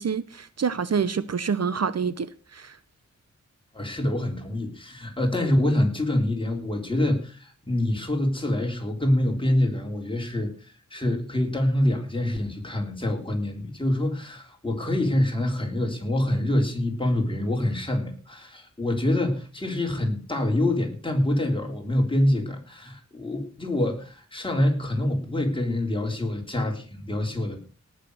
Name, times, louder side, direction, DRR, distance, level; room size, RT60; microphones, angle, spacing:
voice 1, 0.0-2.3 2.5-2.8, right 6 dB, 60° right, 0.7 m, -27 dB
voice 2, 3.7-27.6, left 1 dB, 15° left, 3.7 m, -26 dB
18.5 x 6.6 x 6.5 m
wide cardioid pair, 105°, 30 cm